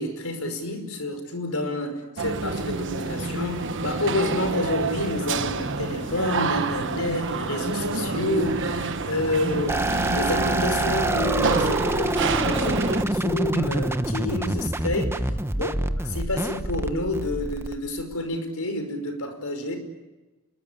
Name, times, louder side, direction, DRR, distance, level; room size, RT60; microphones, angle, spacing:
voice 1, 0.0-19.8, left 1 dB, 75° left, 7 dB, 5.3 m, -29 dB
sound 1, 2.2-13.0, right 4 dB, 60° right, 1.2 m, -28 dB
sound 2, 3.1-12.5, left 1 dB, 30° left, 2.5 m, -42 dB
sound 3, 9.7-18.1, right 1 dB, 10° right, 1.2 m, -26 dB
28.0 x 21.5 x 8.6 m, 1.1 s
head